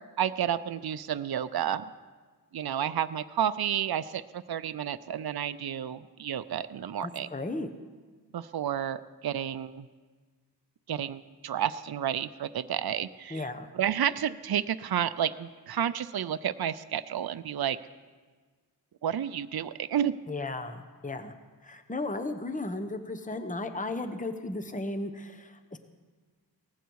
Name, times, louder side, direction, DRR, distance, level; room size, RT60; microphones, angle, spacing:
voice 1, 0.2-1.8 2.5-7.3 8.3-9.9 10.9-13.4 13.7-17.8 19.0-20.2, right 9 dB, 65° right, 12 dB, 0.5 m, -31 dB
voice 2, 7.0-7.7 13.3-13.7 20.3-21.3 21.6-25.8, left 2 dB, 20° left, 7 dB, 0.9 m, -35 dB
18.5 x 15.0 x 4.7 m, 1.4 s
wide cardioid pair, 60°, 40 cm